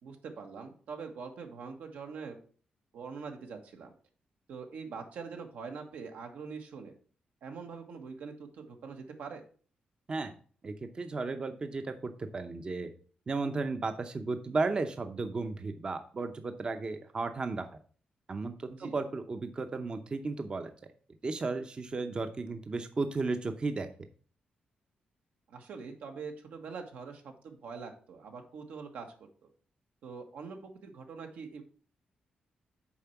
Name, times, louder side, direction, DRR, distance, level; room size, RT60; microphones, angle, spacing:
voice 1, 0.0-2.4 2.9-3.9 4.5-6.9 7.4-9.4 18.7-19.0 25.5-29.1 30.0-31.6, right 5 dB, 85° right, 4 dB, 1.5 m, -43 dB
voice 2, 10.6-12.9 13.3-17.7 18.3-20.7 21.2-23.9, right 3 dB, 35° right, 8 dB, 0.7 m, -34 dB
7.2 x 4.5 x 5.8 m, 0.43 s
cardioid pair, 115°, 3 cm